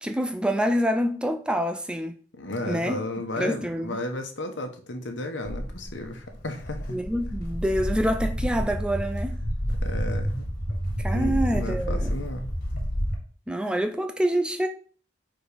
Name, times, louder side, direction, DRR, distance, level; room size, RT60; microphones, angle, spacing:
voice 1, 0.0-2.1 2.7-3.0 3.4-4.0 6.9-9.4 11.0-12.1 13.5-14.7, equal, 5° right, 0.3 m, -26 dB
voice 2, 2.4-7.0 9.8-10.4 11.1-12.5, left 1 dB, 70° left, 1.1 m, -33 dB
Walk footsteps, 5.4-13.1, equal, 45° left, 1.9 m, -29 dB
4.9 x 4.0 x 5.0 m
head